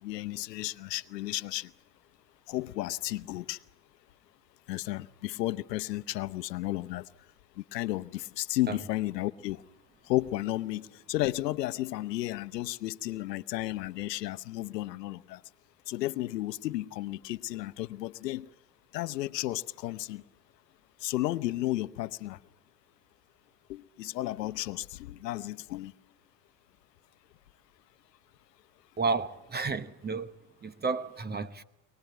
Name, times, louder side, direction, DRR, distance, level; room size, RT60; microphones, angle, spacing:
voice 1, 0.0-1.7 2.5-3.6 4.7-7.0 7.6-9.6 10.1-15.4 15.9-18.5 18.9-20.2 21.0-22.4 23.7-25.9, left 16 dB, 90° left, 0.8 m, -33 dB
voice 2, 29.0-30.3 30.6-31.6, right 4 dB, 20° right, 0.9 m, -31 dB
23.5 x 19.0 x 9.1 m
hypercardioid pair, 95°, 48 cm